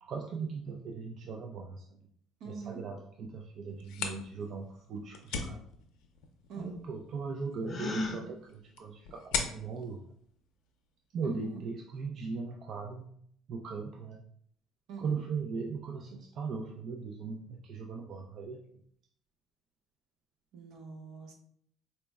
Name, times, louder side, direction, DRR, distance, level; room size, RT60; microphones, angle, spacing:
voice 1, 0.0-2.0 2.5-5.6 6.5-10.0 11.1-13.1 13.5-14.2 15.0-18.6, right 5 dB, 45° right, 2 dB, 0.3 m, -38 dB
voice 2, 2.4-2.8 6.5-6.7 11.2-11.6 14.9-15.2 20.5-21.3, right 4 dB, 65° right, 2 dB, 0.8 m, -43 dB
sound 1, 3.7-11.2, left 6 dB, 85° left, 0.5 m, -41 dB
Gasp, 7.6-8.2, left 2 dB, 20° left, 0.6 m, -34 dB
4.1 x 2.0 x 3.4 m, 0.66 s
cardioid pair, 155°, 0 cm